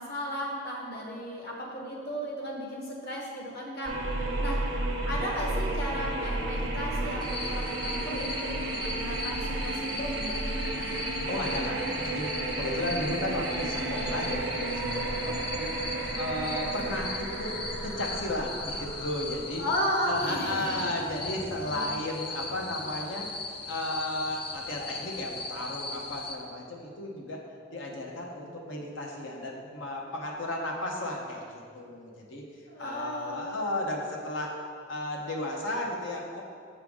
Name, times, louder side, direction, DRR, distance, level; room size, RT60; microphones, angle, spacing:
voice 1, 0.0-4.0 4.4-4.7 5.0-10.4 19.6-20.9 21.6-21.9 32.7-33.6, equal, 55° left, -2 dB, 1.2 m, -34 dB
sound 1, 3.8-19.7, right 2 dB, 80° right, 0.7 m, -32 dB
sound 2, 7.2-26.4, left 3 dB, 30° left, 0.5 m, -38 dB
voice 2, 11.3-15.8 16.1-19.6 20.0-23.3 23.7-27.4 27.7-32.4 32.8-34.5 34.9-36.4, left 1 dB, 85° left, -1 dB, 0.9 m, -34 dB
6.6 x 5.1 x 3.6 m, 2.2 s
head